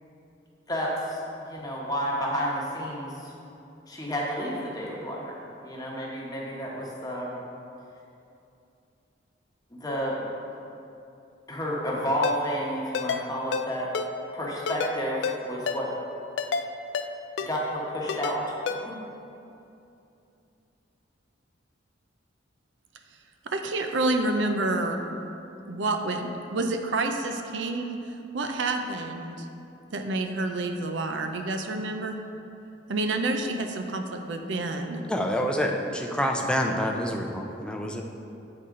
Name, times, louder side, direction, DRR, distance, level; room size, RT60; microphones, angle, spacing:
voice 1, 0.7-1.2 1.5-3.3 3.9-5.3 5.6-7.3 9.7-10.2 11.5-13.9 14.3-15.9 17.5-18.5 18.8-19.0, equal, 20° left, -4 dB, 1.0 m, -30 dB
Ringtone, 12.2-12.4 12.9-13.2 13.5-13.7 13.9-14.1 14.7-14.9 15.2-15.4 15.7-15.8 16.4-16.7 16.9-17.1 17.4-17.5 18.1-18.4 18.7-18.8, left 6 dB, 70° left, 0.3 m, -29 dB
voice 2, 23.5-25.0 25.7-28.0 28.3-29.5 29.9-32.2 32.9-35.0, right 2 dB, 75° right, 5 dB, 0.5 m, -28 dB
voice 3, 35.0-38.0, equal, 5° left, 1 dB, 0.5 m, -27 dB
8.6 x 4.1 x 3.7 m, 2.7 s
head